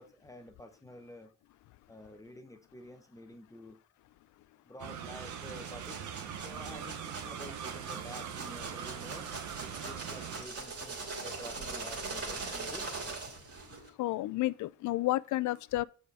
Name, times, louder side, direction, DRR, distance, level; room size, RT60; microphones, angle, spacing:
voice 1, 0.0-1.3 1.9-3.8 4.7-6.1 6.4-9.3 9.6-12.9, left 1 dB, 10° left, 0.8 m, -50 dB
sound 1, 4.8-10.4, right 8 dB, 75° right, 1.1 m, -42 dB
sound 2, 5.2-13.9, right 3 dB, 50° right, 3.0 m, -42 dB
voice 2, 14.0-15.8, left 17 dB, 75° left, 0.4 m, -31 dB
6.8 x 5.0 x 5.4 m
cardioid pair, 90°, 30 cm